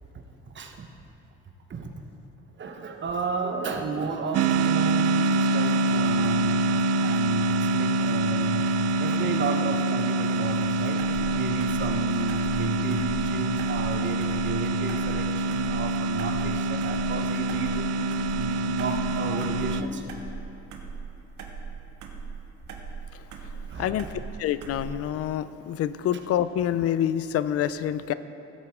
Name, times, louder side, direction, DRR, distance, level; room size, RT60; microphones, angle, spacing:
voice 1, 0.5-0.9 1.7-1.9 2.6-11.0 11.3-17.9 18.4-20.2 23.5-24.0, right 3 dB, 40° right, 4 dB, 1.1 m, -33 dB
sound 1, 4.3-19.8, right 2 dB, 60° right, 0.5 m, -25 dB
sound 2, 11.0-25.1, right 5 dB, 75° right, 1.2 m, -40 dB
voice 2, 24.4-28.1, left 10 dB, 55° left, 14 dB, 0.5 m, -27 dB
15.5 x 8.4 x 3.6 m, 2.8 s
cardioid pair, 100°, 29 cm